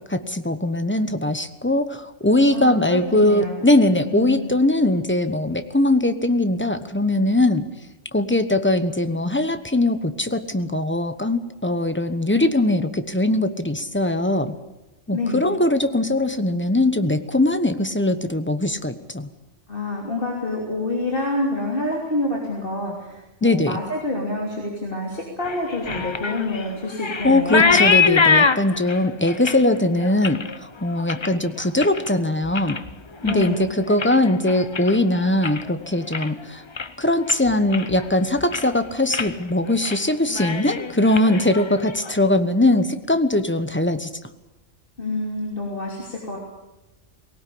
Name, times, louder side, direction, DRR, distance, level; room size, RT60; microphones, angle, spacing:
voice 1, 0.1-7.6 8.1-14.5 15.1-19.3 23.4-23.8 27.2-32.8 33.2-36.6 37.0-44.1, left 1 dB, 10° left, 9 dB, 1.0 m, -21 dB
voice 2, 2.5-3.7 4.0-4.5 15.1-15.5 19.7-27.9 33.2-33.7 45.0-46.4, left 2 dB, 45° left, -2 dB, 3.4 m, -27 dB
sound 1, 25.4-32.1 32.4-32.9 33.2-35.7 36.0-36.4 36.8-36.9 37.3-38.1 38.4-38.8 39.1-39.3 39.7-40.0 40.3-42.1, left 5 dB, 30° left, 0.6 m, -24 dB
20.0 x 18.0 x 8.6 m, 1.0 s
omnidirectional pair, 1.3 m